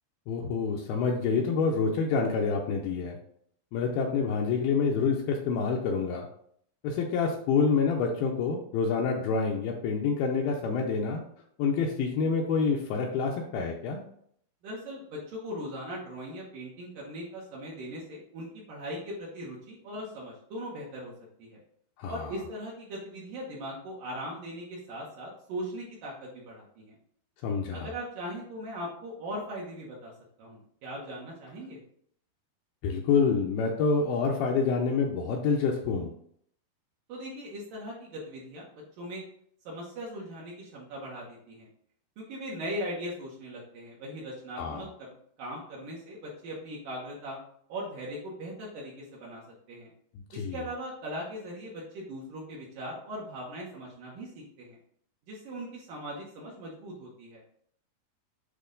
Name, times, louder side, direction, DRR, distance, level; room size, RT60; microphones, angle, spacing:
voice 1, 0.3-3.2 3.7-6.3 6.8-11.2 11.6-14.0 22.0-22.3 27.4-27.9 32.8-36.1 44.6-44.9 50.3-50.6, left 5 dB, 80° left, 1 dB, 2.3 m, -27 dB
voice 2, 14.6-21.1 21.4-21.6 22.1-26.9 27.7-30.1 30.4-31.8 37.1-38.7 39.0-39.2 39.7-41.7 42.2-47.4 47.7-49.4 49.7-49.9 50.3-54.8 55.3-57.4, equal, 65° right, -3 dB, 2.4 m, -39 dB
8.4 x 3.0 x 3.8 m, 0.65 s
omnidirectional pair, 4.6 m